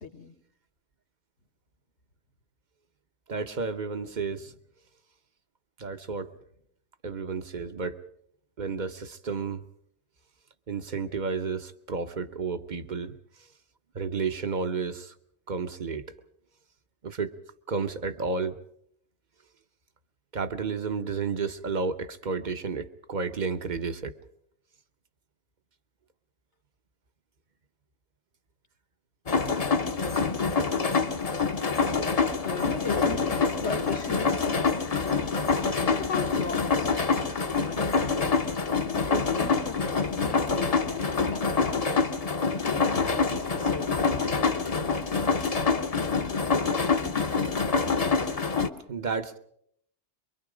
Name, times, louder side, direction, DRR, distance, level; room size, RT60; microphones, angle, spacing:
voice 1, 0.0-0.3 32.4-35.3 35.8-37.0 37.6-38.0 38.7-39.8 40.2-41.9 42.7-44.5, left 5 dB, 75° left, 5 dB, 1.8 m, -38 dB
voice 2, 3.3-4.5 5.8-6.3 7.0-8.0 8.6-9.6 10.7-13.2 13.9-15.1 15.5-16.0 17.0-17.3 17.7-18.6 20.3-24.1 48.9-49.4, right 5 dB, 45° right, 10 dB, 1.0 m, -31 dB
sound 1, 29.3-48.7, left 4 dB, 35° left, 0.9 m, -26 dB
24.5 x 23.5 x 5.0 m, 0.69 s
omnidirectional pair, 1.2 m